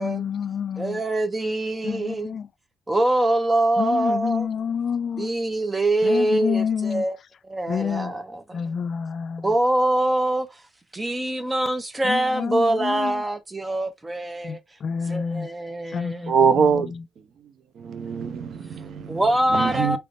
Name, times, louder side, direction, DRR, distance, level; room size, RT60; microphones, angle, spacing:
voice 1, 0.0-1.0 1.8-2.5 3.8-5.3 6.0-7.0 7.7-8.1 8.5-9.5 12.0-13.2 14.4-15.5 15.9-17.1, left 7 dB, 55° left, 0.3 m, -28 dB
voice 2, 0.8-2.3 2.9-4.5 5.2-7.2 7.5-8.6 9.4-10.6 10.9-14.6 15.1-16.5 19.1-20.0, right 1 dB, 20° right, 0.7 m, -24 dB
voice 3, 16.3-16.9 17.8-19.2 19.5-20.0, right 6 dB, 65° right, 0.7 m, -22 dB
3.4 x 3.1 x 2.5 m
cardioid pair, 90°, 0 cm